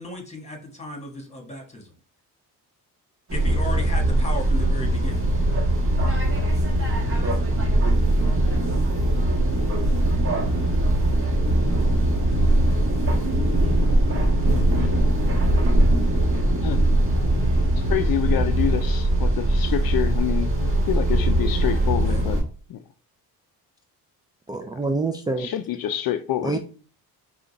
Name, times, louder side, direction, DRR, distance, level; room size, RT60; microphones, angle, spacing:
voice 1, 0.0-1.9 3.3-5.2 22.1-22.4, left 1 dB, 15° left, 1.5 m, -35 dB
sound 1, 3.3-22.4, right 1 dB, 35° right, 1.3 m, -21 dB
voice 2, 17.8-22.4 22.7-22.8 25.4-26.6, left 11 dB, 60° left, 0.5 m, -27 dB
voice 3, 24.5-25.5 26.4-26.6, right 3 dB, 10° right, 0.4 m, -26 dB
5.0 x 2.4 x 4.0 m
cardioid pair, 90°, 39 cm